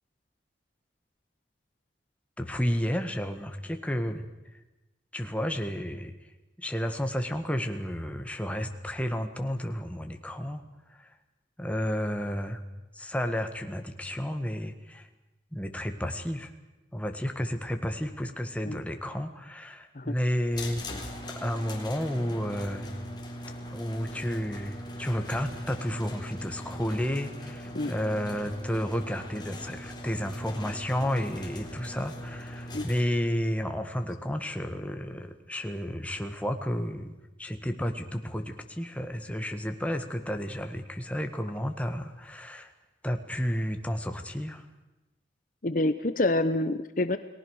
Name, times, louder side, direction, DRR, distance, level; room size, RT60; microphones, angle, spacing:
voice 1, 2.4-4.2 5.1-6.1 6.6-10.6 10.9-11.1 11.6-12.6 12.9-15.1 15.5-16.5 16.9-20.8 21.4-22.9 23.7-37.1 37.4-42.7 43.0-44.6, equal, 5° left, 6 dB, 1.7 m, -31 dB
sound 1, 20.5-33.0, left 1 dB, 25° left, 3.9 m, -40 dB
voice 2, 45.6-47.2, left 2 dB, 45° left, 11 dB, 0.9 m, -27 dB
30.0 x 19.5 x 6.5 m, 1.0 s
head